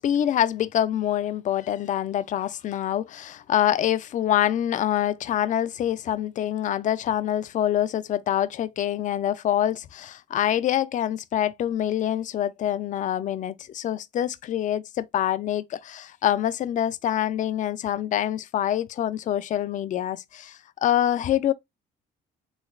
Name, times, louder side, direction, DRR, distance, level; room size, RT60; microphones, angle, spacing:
voice 1, 0.0-21.5, left 11 dB, 50° left, 0.4 m, -25 dB
3.7 x 3.1 x 2.3 m
cardioid pair, 110°, 17 cm